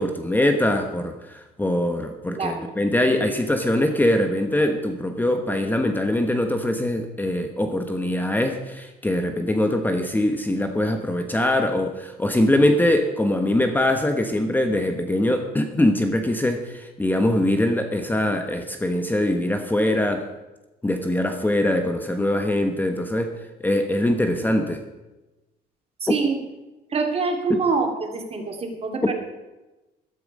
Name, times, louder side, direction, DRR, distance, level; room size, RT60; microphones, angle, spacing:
voice 1, 0.0-20.3 20.8-24.8 26.1-26.2 27.5-27.6, left 1 dB, 10° left, 5 dB, 1.2 m, -22 dB
voice 2, 26.0-26.4 26.9-29.1, right 4 dB, 35° right, 4 dB, 2.5 m, -25 dB
14.0 x 12.5 x 5.4 m, 1.1 s
cardioid pair, 110°, 17 cm